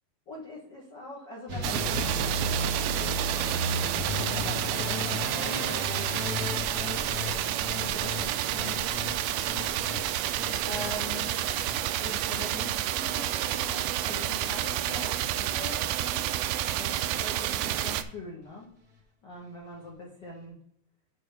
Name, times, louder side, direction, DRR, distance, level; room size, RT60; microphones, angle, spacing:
voice 1, 0.3-11.3 12.0-16.3 16.8-18.7 19.2-20.6, left 2 dB, 65° left, -3 dB, 1.0 m, -43 dB
sound 1, 1.5-13.6 13.9-14.5 14.8-15.4 15.7-15.9 16.3-16.4 16.6-16.7, left 1 dB, 50° right, 1.2 m, -35 dB
sound 2, 1.6-18.0, right 12 dB, 80° right, 2.3 m, -30 dB
9.0 x 4.0 x 5.6 m, 0.73 s
omnidirectional pair, 4.5 m